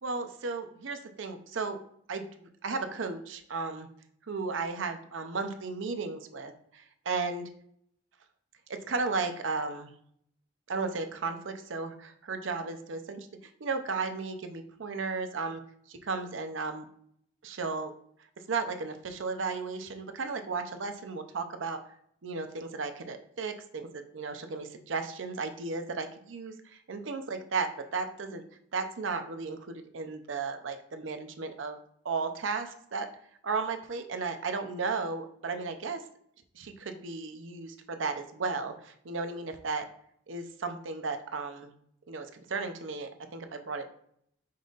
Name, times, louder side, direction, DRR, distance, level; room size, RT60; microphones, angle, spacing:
voice 1, 0.0-1.8 2.1-3.9 4.3-7.4 8.7-9.9 10.7-13.3 13.6-15.6 15.9-16.9 17.4-17.9 18.5-21.8 22.2-28.4 28.7-31.8 32.0-33.1 33.4-36.0 36.5-39.9 40.3-41.7 42.1-43.9, right 4 dB, 80° right, 7 dB, 0.6 m, -34 dB
5.5 x 3.9 x 2.5 m, 0.66 s
head